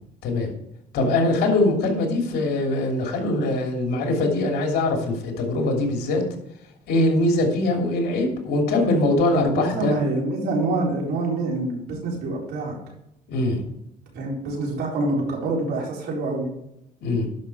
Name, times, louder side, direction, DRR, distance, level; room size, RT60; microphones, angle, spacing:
voice 1, 0.9-6.2 6.9-10.0 13.3-13.6 17.0-17.3, left 2 dB, 70° left, 1 dB, 2.9 m, -22 dB
voice 2, 9.3-12.8 14.1-16.5, right 2 dB, 70° right, -2 dB, 4.2 m, -26 dB
11.5 x 5.7 x 4.8 m, 0.81 s
cardioid pair, 110°, 17 cm